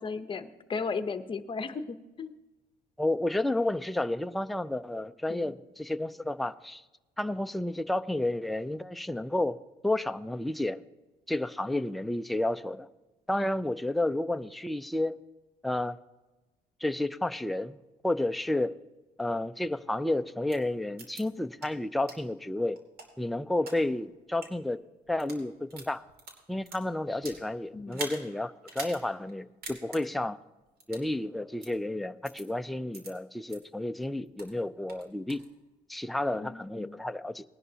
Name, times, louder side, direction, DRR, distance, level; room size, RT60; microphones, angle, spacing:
voice 1, 0.0-2.3 5.3-5.6 27.7-28.1 36.3-37.0, left 4 dB, 30° left, 10 dB, 0.8 m, -36 dB
voice 2, 3.0-6.8 7.2-9.6 9.8-10.8 11.3-12.9 13.3-15.2 15.6-16.0 16.8-17.8 18.0-18.8 19.2-22.8 23.2-24.8 25.1-26.0 26.5-30.4 30.9-35.4 35.9-37.4, left 1 dB, ahead, 10 dB, 0.4 m, -31 dB
sound 1, 20.5-20.6 21.0-21.2 21.6-21.7 22.1-22.2 22.7-23.8 24.3-24.5 25.1-25.4 25.7-27.4 27.9-28.2 28.7-29.0 29.3-29.4 29.6-30.0 30.8-31.1 31.6-31.7 32.3-32.4 32.9-33.1 33.5-33.6 34.0-34.5 34.9-35.5, right 3 dB, 65° right, 2.8 m, -42 dB
19.5 x 11.0 x 2.8 m, 1.1 s
cardioid pair, 110°, 17 cm